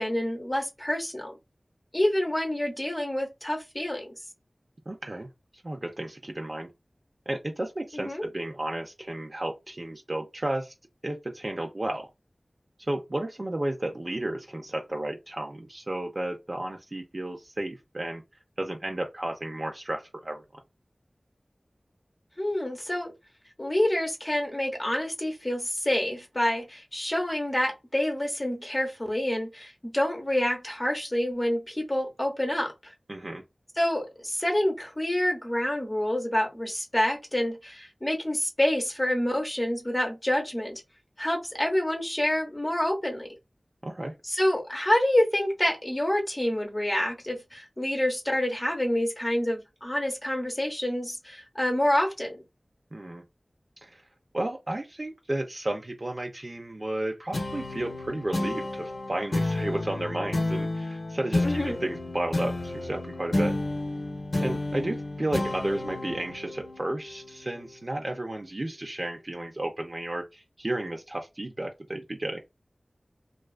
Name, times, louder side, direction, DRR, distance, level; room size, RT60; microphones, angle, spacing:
voice 1, 0.0-1.3 1.9-4.1 7.9-8.2 22.4-23.1 23.6-32.7 33.8-40.8 41.2-43.3 44.2-52.4 61.4-61.7, left 1 dB, 30° left, 0.8 m, -27 dB
voice 2, 4.9-5.3 5.6-6.7 7.3-10.7 11.0-12.1 12.9-18.2 18.6-20.4 33.1-33.4 43.8-44.1 52.9-53.2 53.8-54.0 54.3-63.6 64.4-72.4, right 1 dB, 45° right, 0.4 m, -33 dB
sound 1, 57.3-68.2, left 2 dB, 80° left, 0.6 m, -31 dB
2.3 x 2.3 x 2.3 m
wide cardioid pair, 60°, 0 cm